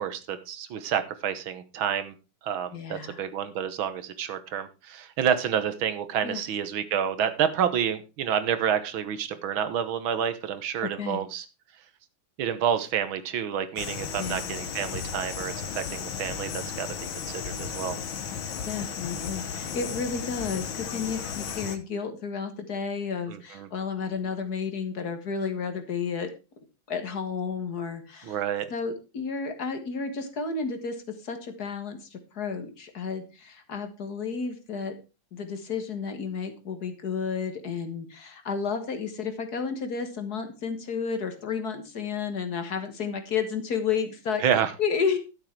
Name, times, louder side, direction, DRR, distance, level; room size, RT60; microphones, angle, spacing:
voice 1, 0.0-2.1 2.4-11.5 12.4-16.9 17.3-18.0 23.3-23.7 28.2-28.7 44.4-44.7, right 8 dB, 90° right, 1.9 m, -29 dB
voice 2, 2.7-3.3 6.2-6.4 10.8-11.2 14.2-14.4 18.7-26.3 26.9-28.4 28.7-31.0 31.2-35.0 35.3-44.4 44.8-45.2, left 5 dB, 50° left, 2.0 m, -32 dB
sound 1, 13.8-21.8, left 7 dB, 85° left, 1.9 m, -35 dB
12.0 x 7.5 x 4.6 m
omnidirectional pair, 2.2 m